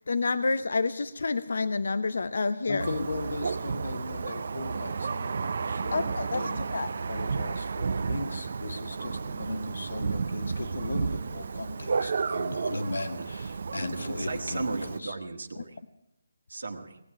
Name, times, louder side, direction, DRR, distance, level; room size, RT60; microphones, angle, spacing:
voice 1, 0.0-2.9 5.9-6.4 6.7-6.9, left 3 dB, 70° left, 13 dB, 0.7 m, -28 dB
voice 2, 2.7-15.2, left 2 dB, 85° left, 6 dB, 1.9 m, -37 dB
Thunder, 2.8-15.0, right 5 dB, 55° right, 0.5 m, -32 dB
voice 3, 14.3-15.8 16.5-17.0, right 3 dB, 85° right, 4 dB, 1.6 m, -35 dB
18.5 x 7.7 x 10.0 m, 0.84 s
hypercardioid pair, 170°, 0 cm